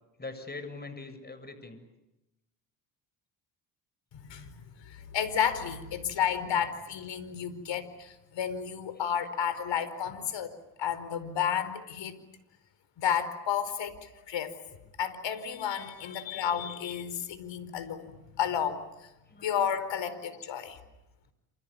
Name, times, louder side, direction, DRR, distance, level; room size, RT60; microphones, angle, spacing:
voice 1, 0.2-1.8 5.9-6.0 9.0-9.1 16.0-16.6 19.3-19.5 20.1-20.2, left 3 dB, 20° left, 10 dB, 7.5 m, -44 dB
voice 2, 4.1-10.5 10.8-12.2 13.0-19.1 19.4-20.8, left 8 dB, 60° left, 13 dB, 4.8 m, -32 dB
28.5 x 28.5 x 7.1 m, 0.93 s
hypercardioid pair, 65°, 49 cm